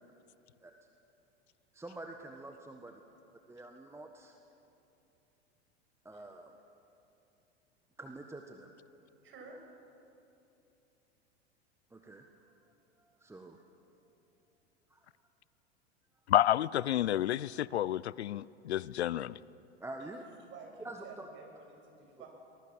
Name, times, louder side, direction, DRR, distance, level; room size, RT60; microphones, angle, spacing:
voice 1, 1.7-3.0 3.5-4.4 6.0-6.5 8.0-8.7 11.9-12.2 13.0-13.6 14.9-15.1 19.8-20.2 20.8-21.0 22.2-22.3, right 2 dB, 10° right, 1.5 m, -47 dB
voice 2, 9.2-9.6 20.0-22.3, right 4 dB, 35° right, 7.3 m, -51 dB
voice 3, 16.3-19.4, left 12 dB, 75° left, 0.5 m, -30 dB
24.0 x 20.0 x 7.5 m
figure-of-eight pair, 90°, 33 cm